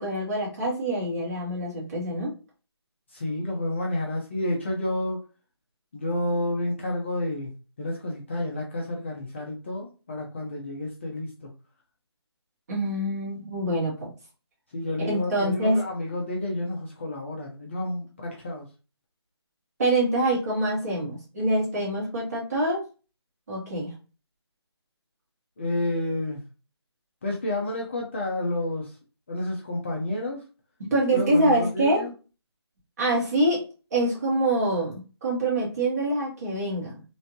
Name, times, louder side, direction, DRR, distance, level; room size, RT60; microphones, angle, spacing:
voice 1, 0.0-2.3 12.7-14.1 15.0-15.8 19.8-22.8 23.5-23.9 30.9-32.1 33.0-33.6 33.9-37.0, right 1 dB, 35° right, -4 dB, 1.9 m, -25 dB
voice 2, 3.1-5.2 5.9-7.5 7.8-11.5 14.7-18.7 25.6-26.4 27.2-28.9 29.3-30.4 31.1-32.1, left 1 dB, 25° left, -1 dB, 0.6 m, -30 dB
3.3 x 3.1 x 2.7 m, 0.33 s
figure-of-eight pair, 165°, 14 cm